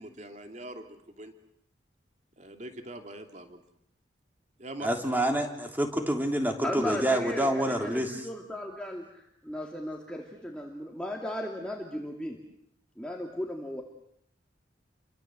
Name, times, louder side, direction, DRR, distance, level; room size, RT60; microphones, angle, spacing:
voice 1, 0.0-1.3 2.4-3.6 4.6-5.0, right 1 dB, 40° right, 5 dB, 2.9 m, -43 dB
voice 2, 4.8-8.2, right 1 dB, 10° right, 4 dB, 3.3 m, -27 dB
voice 3, 6.6-12.4 13.0-13.8, left 1 dB, 5° left, 0 dB, 2.6 m, -36 dB
30.0 x 24.5 x 7.8 m, 0.72 s
head